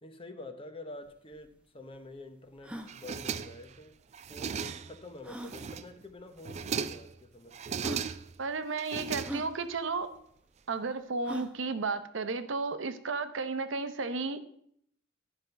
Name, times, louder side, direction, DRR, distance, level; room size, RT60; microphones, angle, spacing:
voice 1, 0.0-4.0 4.3-7.6, left 2 dB, 30° left, 8 dB, 0.9 m, -47 dB
sound 1, 1.1-1.2 1.3-1.4 2.0-2.1 2.6-2.9 4.3-4.4 5.2-5.6 6.5-6.6 7.4-7.5 7.8-8.1 9.2-9.5 11.2-11.6, equal, 5° right, 0.7 m, -40 dB
sound 2, 2.9-3.8 4.1-5.0 5.4-6.0 6.4-7.1 7.5-8.4 8.8-9.8, right 6 dB, 35° right, 0.3 m, -37 dB
voice 2, 8.4-10.1 10.7-14.4, right 4 dB, 70° right, 10 dB, 0.8 m, -33 dB
11.5 x 5.3 x 5.7 m, 0.68 s
head